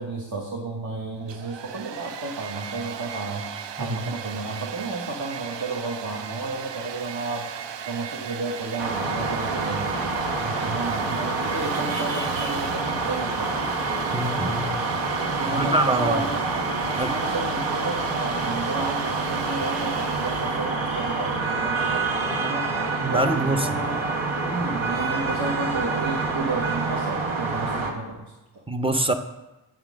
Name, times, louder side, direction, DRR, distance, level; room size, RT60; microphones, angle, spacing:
voice 1, 0.0-10.0 10.4-13.7 15.4-16.4 16.8-22.7 23.1-24.1 24.4-28.6, right 3 dB, 50° right, -2 dB, 1.2 m, -32 dB
Domestic sounds home sounds, 1.2-20.7, right 8 dB, 65° right, 0.5 m, -36 dB
sound 1, 8.3-21.4, right 2 dB, 30° right, 1.1 m, -44 dB
sound 2, 8.8-27.9, right 3 dB, 85° right, 1.1 m, -27 dB
voice 2, 14.1-14.8 15.5-16.2 17.0-17.1 23.0-23.9 28.7-29.1, right 2 dB, 10° right, 8 dB, 0.5 m, -24 dB
8.8 x 3.7 x 6.1 m, 1.1 s
wide cardioid pair, 105°, 46 cm